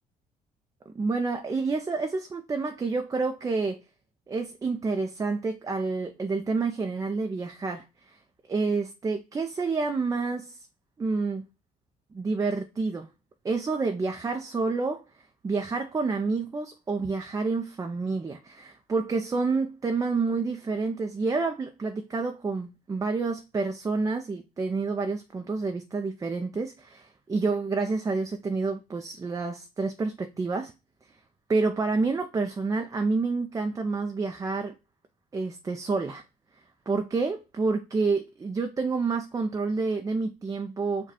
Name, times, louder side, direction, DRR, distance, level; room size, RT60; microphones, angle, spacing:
voice 1, 0.9-3.8 4.3-8.2 8.5-10.6 11.0-11.5 12.1-13.1 13.4-15.0 15.4-30.7 31.5-34.7 35.3-36.2 36.9-41.1, right 4 dB, 20° right, 0.4 m, -28 dB
4.9 x 2.2 x 4.1 m
cardioid pair, 110°, 17 cm